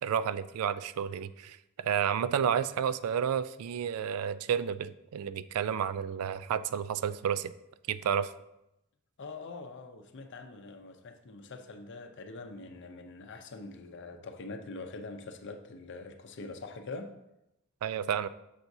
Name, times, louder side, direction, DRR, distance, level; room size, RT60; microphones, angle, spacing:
voice 1, 0.0-7.5 7.9-8.3 17.8-18.3, right 8 dB, 85° right, 15 dB, 0.3 m, -31 dB
voice 2, 9.2-17.1, left 3 dB, 55° left, 6 dB, 0.6 m, -44 dB
6.8 x 5.9 x 2.7 m, 0.87 s
head